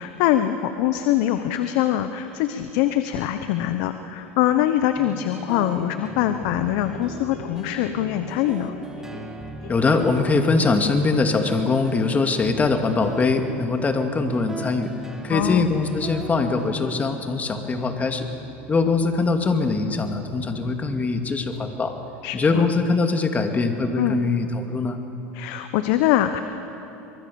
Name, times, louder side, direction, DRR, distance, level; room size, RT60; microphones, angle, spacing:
voice 1, 0.0-8.7 15.3-15.7 22.2-22.7 24.0-24.2 25.3-26.4, left 12 dB, 65° left, 9 dB, 1.0 m, -23 dB
sound 1, 5.0-22.9, right 1 dB, 10° right, 2.3 m, -39 dB
sound 2, 6.4-11.5, left 2 dB, 90° left, 4.5 m, -42 dB
voice 2, 9.7-14.9 15.2-18.3 18.7-21.9 22.3-25.0, left 3 dB, 25° left, 5 dB, 2.3 m, -22 dB
23.5 x 23.0 x 7.1 m, 3.0 s
hypercardioid pair, 95°, 7 cm